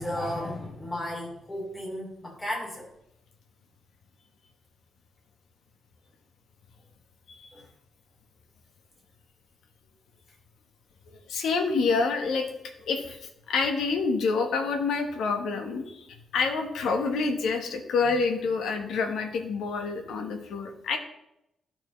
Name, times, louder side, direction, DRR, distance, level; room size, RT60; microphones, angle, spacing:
voice 1, 0.0-2.9 7.5-7.7, left 1 dB, 20° left, -2 dB, 2.7 m, -34 dB
voice 2, 11.1-12.5 12.9-13.2 13.5-16.1 16.3-21.0, left 4 dB, 85° left, 5 dB, 1.2 m, -27 dB
13.0 x 4.5 x 3.2 m, 0.82 s
cardioid pair, 120°, 0 cm